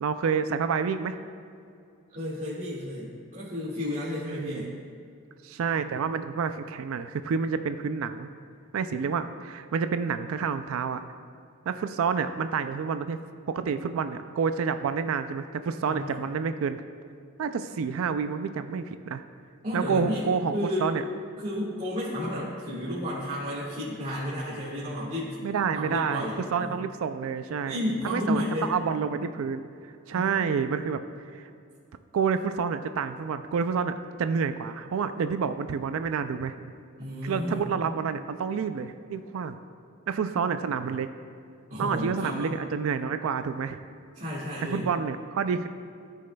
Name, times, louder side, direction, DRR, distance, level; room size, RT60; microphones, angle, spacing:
voice 1, 0.0-1.2 4.3-4.8 5.4-8.3 8.7-11.0 11.7-13.2 13.5-16.8 17.4-19.2 19.7-20.5 20.8-21.0 25.4-27.8 28.0-28.4 28.7-31.5 32.1-36.5 37.2-39.6 40.1-41.1 41.8-43.8 44.7-45.7, right 6 dB, 80° right, 10 dB, 0.4 m, -29 dB
voice 2, 2.1-4.7 15.9-16.2 19.6-20.9 21.4-25.3 25.7-26.8 27.6-28.7 30.1-30.5 37.0-37.6 41.7-42.6 44.1-44.9, left 1 dB, 40° right, -10 dB, 1.7 m, -32 dB
14.5 x 6.4 x 2.3 m, 2.4 s
head